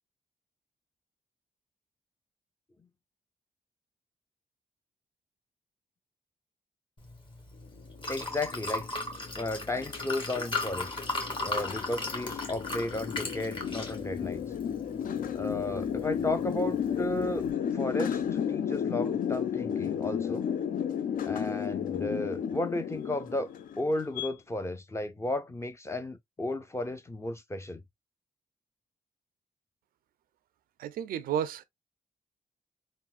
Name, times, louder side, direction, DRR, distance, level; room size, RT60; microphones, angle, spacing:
Liquid, 7.0-17.5, left 2 dB, 35° left, 1.3 m, -38 dB
sound 1, 7.9-24.3, left 8 dB, 70° left, 0.4 m, -33 dB
voice 1, 8.1-8.9 9.4-10.9 11.4-14.5 15.3-20.5 21.2-23.5 23.8-27.8, left 2 dB, 20° left, 0.5 m, -34 dB
voice 2, 30.8-31.6, right 9 dB, 85° right, 0.4 m, -32 dB
3.7 x 2.1 x 2.4 m
cardioid pair, 65°, 15 cm